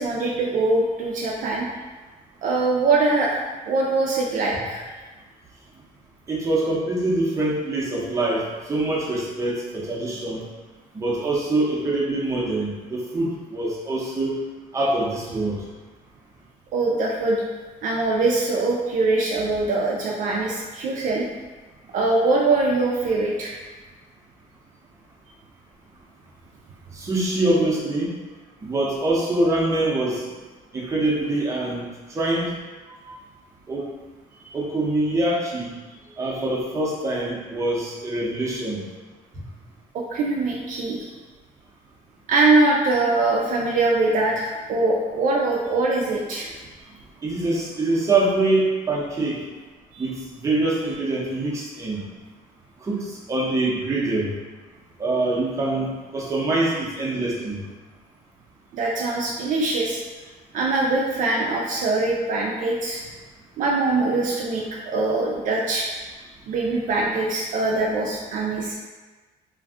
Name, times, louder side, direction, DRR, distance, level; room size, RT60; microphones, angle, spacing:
voice 1, 0.0-1.7 2.4-3.4 3.7-4.8 16.7-17.4 17.8-21.2 21.9-23.5 33.1-33.2 34.4-34.5 39.9-41.1 42.3-46.5 49.9-50.0 58.7-60.0 60.5-63.0 63.6-65.9 66.5-68.7, right 3 dB, 55° right, -2 dB, 0.4 m, -22 dB
voice 2, 6.3-10.4 10.9-14.4 14.7-15.6 26.9-28.1 28.6-30.3 30.7-31.8 32.1-32.5 33.7-33.8 34.5-35.7 36.2-38.8 47.2-49.4 50.0-52.0 52.8-54.3 55.0-57.6, right 2 dB, 20° right, -5 dB, 0.7 m, -24 dB
2.5 x 2.3 x 3.5 m, 1.3 s
cardioid pair, 135°, 16 cm